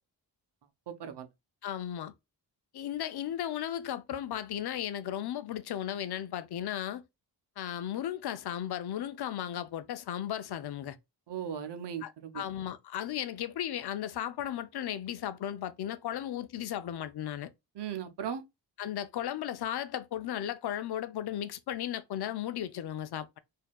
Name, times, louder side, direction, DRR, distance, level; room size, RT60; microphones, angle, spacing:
voice 1, 0.9-1.3 11.3-12.4 17.8-18.4, right 8 dB, 70° right, 0.8 m, -37 dB
voice 2, 1.6-2.1 2.7-7.0 7.6-11.0 12.0-17.5 18.8-23.4, left 11 dB, 65° left, 0.5 m, -35 dB
4.3 x 2.7 x 2.2 m
wide cardioid pair, 150°, 43 cm